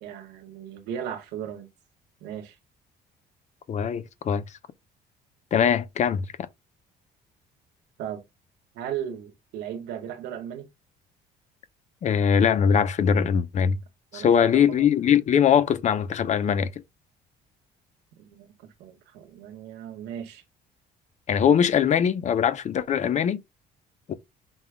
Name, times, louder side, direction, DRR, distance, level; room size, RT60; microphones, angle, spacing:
voice 1, 0.0-1.7 2.2-2.6 8.0-8.2 8.7-10.7 14.1-14.9 18.2-20.4, right 9 dB, 90° right, 1.1 m, -36 dB
voice 2, 3.7-4.4 5.5-6.3 12.0-13.8 14.1-16.7 21.3-23.4 24.1-24.2, left 8 dB, 45° left, 0.6 m, -21 dB
5.4 x 2.3 x 3.3 m
cardioid pair, 110°, 17 cm